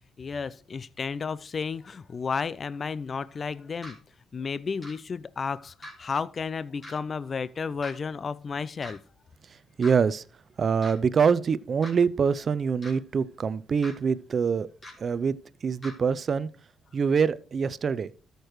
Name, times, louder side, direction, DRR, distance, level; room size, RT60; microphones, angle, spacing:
voice 1, 0.2-4.0 4.3-9.0, left 5 dB, 40° left, 0.4 m, -32 dB
sound 1, 3.8-3.9 4.8-4.9 5.8-5.9 6.8-6.9 7.8-7.9 8.8-8.9 9.8-9.9 10.8-10.9 11.8-11.9 12.8-12.9 13.8-13.9 14.8-14.9 15.8-15.9, left 1 dB, 20° left, 3.9 m, -42 dB
voice 2, 9.8-10.2 10.6-14.7 15.0-15.4 15.6-16.5 16.9-18.1, right 6 dB, 45° right, 0.5 m, -25 dB
13.0 x 6.7 x 3.1 m
cardioid pair, 90°, 0 cm